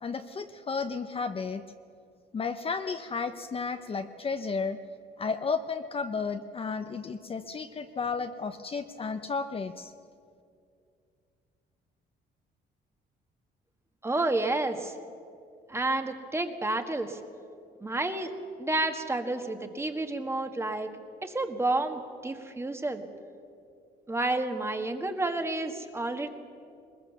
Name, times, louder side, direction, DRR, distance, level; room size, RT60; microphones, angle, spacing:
voice 1, 0.0-1.6 2.3-4.8 5.2-9.9, left 5 dB, 30° left, 8 dB, 0.8 m, -33 dB
voice 2, 14.0-14.9 15.7-17.2 17.8-18.3 18.6-20.9 21.2-23.0 24.1-26.3, right 2 dB, 15° right, 6 dB, 1.6 m, -30 dB
21.0 x 21.0 x 7.0 m, 2.4 s
cardioid pair, 120°, 18 cm